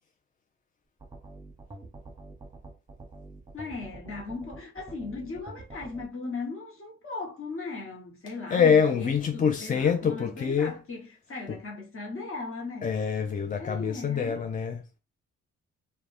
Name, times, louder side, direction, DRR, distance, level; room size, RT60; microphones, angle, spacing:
sound 1, 1.0-6.1, right 2 dB, 15° right, 0.9 m, -45 dB
voice 1, 3.5-12.9 13.5-14.4, left 3 dB, 40° left, 1.1 m, -38 dB
voice 2, 8.5-10.8 11.5-11.6 12.8-15.0, left 6 dB, 25° left, 0.3 m, -25 dB
2.3 x 2.2 x 3.2 m
supercardioid pair, 45°, 33 cm